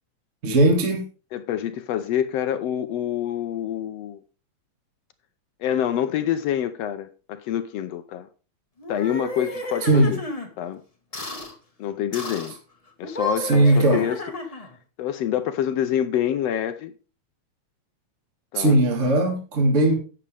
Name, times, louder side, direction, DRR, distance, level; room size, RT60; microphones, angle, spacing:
voice 1, 0.4-1.0 9.8-10.2 13.4-14.1 18.5-19.9, right 1 dB, 25° right, 2.1 m, -18 dB
voice 2, 1.3-4.2 5.6-8.3 8.9-10.2 10.6-10.8 11.8-12.5 13.0-14.2 14.5-14.6 15.0-16.9 18.5-18.8, left 10 dB, 70° left, 1.6 m, -26 dB
sound 1, 8.8-10.5 11.1-11.5 12.1-12.6 13.0-14.8, left 2 dB, 20° left, 1.0 m, -32 dB
11.5 x 8.7 x 3.4 m
omnidirectional pair, 3.4 m